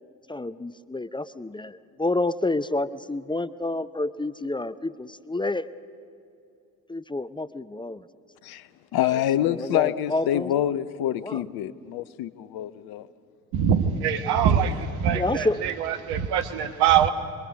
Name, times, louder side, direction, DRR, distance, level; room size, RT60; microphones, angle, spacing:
voice 1, 0.3-5.7 6.9-8.0 9.0-9.2 9.5-10.5 11.2-11.4 15.1-15.7, left 2 dB, 10° left, 0.6 m, -29 dB
voice 2, 8.4-13.1, left 12 dB, 60° left, 0.9 m, -26 dB
voice 3, 13.5-17.1, right 8 dB, 65° right, 1.4 m, -23 dB
26.0 x 22.0 x 6.4 m
hypercardioid pair, 50°, 41 cm